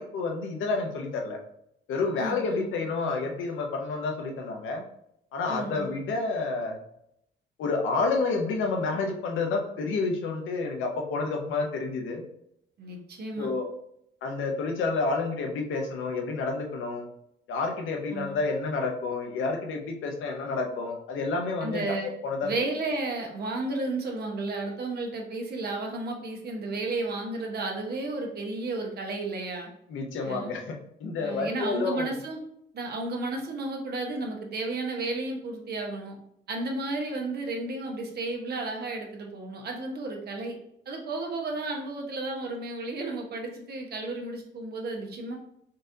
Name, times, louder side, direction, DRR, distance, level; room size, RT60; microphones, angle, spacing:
voice 1, 0.0-1.4 1.9-4.8 5.3-6.8 7.6-12.2 13.4-13.7 14.2-17.0 17.5-21.9 22.2-22.5 29.9-32.1, left 3 dB, 80° left, 2 dB, 0.7 m, -29 dB
voice 2, 2.2-2.7 5.5-5.9 12.8-13.5 18.1-18.3 21.6-22.1 22.4-29.7 30.2-30.5 31.2-32.4 32.7-36.2 36.5-40.6 40.9-45.4, right 2 dB, 55° right, 2 dB, 0.9 m, -33 dB
3.9 x 2.5 x 2.6 m, 0.75 s
cardioid pair, 90°, 20 cm